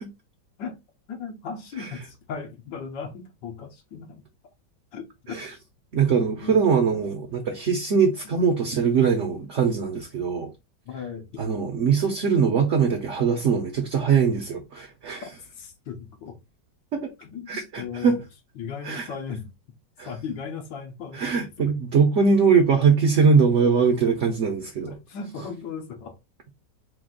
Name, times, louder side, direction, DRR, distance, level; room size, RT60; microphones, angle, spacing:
voice 1, 1.1-4.2 4.9-5.4 6.4-6.6 6.9-7.0 10.9-11.6 15.2-15.3 15.5-16.4 17.2-18.2 18.5-19.5 20.0-21.7 24.8-26.2, left 6 dB, 80° left, 1.6 m, -37 dB
voice 2, 5.9-10.5 11.4-15.2 16.9-17.1 17.5-18.2 18.8-19.1 20.0-20.1 21.1-25.0, right 5 dB, 55° right, 0.9 m, -22 dB
4.6 x 2.5 x 3.7 m
omnidirectional pair, 1.9 m